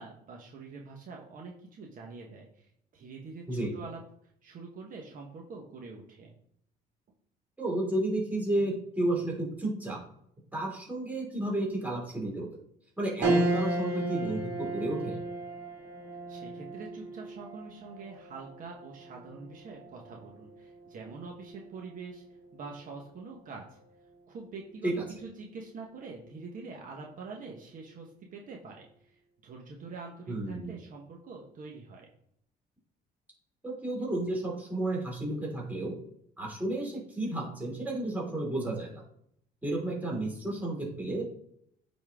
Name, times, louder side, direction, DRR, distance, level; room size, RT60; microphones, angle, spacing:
voice 1, 0.0-3.4 3.7-4.0 4.4-6.3 16.3-22.2 22.5-23.8 24.3-24.9 25.2-32.1, right 4 dB, 55° right, 0 dB, 1.4 m, -45 dB
voice 2, 7.6-10.0 10.5-12.6 13.0-15.2 24.8-25.0 30.3-30.7 33.6-36.0 36.4-39.0 39.6-41.2, right 1 dB, 10° right, -3 dB, 2.9 m, -32 dB
sound 1, 13.2-22.8 23.3-23.4 24.7-25.2, right 2 dB, 85° right, 2.6 m, -35 dB
8.7 x 4.2 x 3.7 m, 0.70 s
cardioid pair, 110°, 17 cm